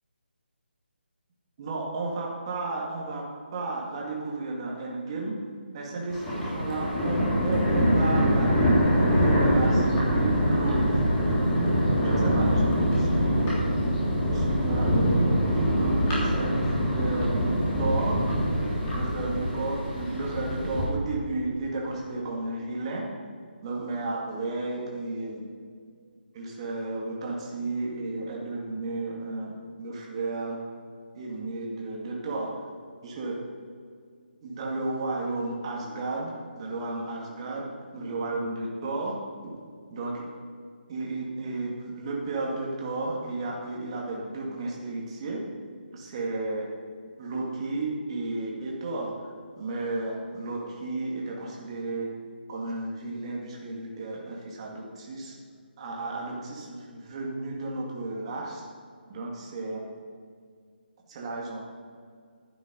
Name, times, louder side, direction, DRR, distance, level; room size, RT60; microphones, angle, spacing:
voice 1, 1.6-3.2 3.5-5.4 5.7-11.1 12.0-13.5 13.9-18.2 18.9-23.1 23.6-25.4 26.3-30.6 31.1-32.5 33.0-33.4 34.4-39.6 39.9-40.2 40.9-45.4 45.9-46.7 47.2-49.1 49.6-52.1 52.5-55.4 55.8-58.6 59.1-59.9 61.1-61.6, right 2 dB, 30° right, -2 dB, 2.2 m, -33 dB
Thunder, 6.1-20.9, equal, 15° left, 3.2 m, -24 dB
11.5 x 9.3 x 5.2 m, 2.1 s
figure-of-eight pair, 160°, 6 cm